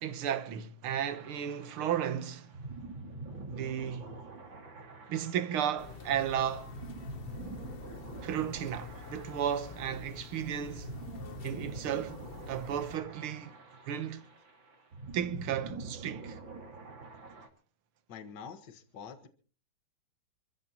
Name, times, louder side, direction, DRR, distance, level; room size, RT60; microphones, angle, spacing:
voice 1, 0.0-2.5 3.5-4.2 5.1-6.7 8.2-10.9 11.4-13.5 13.9-14.3 15.1-16.4, right 9 dB, 85° right, 2.0 m, -34 dB
sound 1, 1.1-17.5, right 3 dB, 65° right, 3.2 m, -46 dB
sound 2, 5.8-13.0, left 5 dB, 40° left, 0.9 m, -47 dB
voice 2, 18.1-19.3, left 6 dB, 55° left, 2.1 m, -46 dB
27.5 x 14.5 x 3.0 m
omnidirectional pair, 2.3 m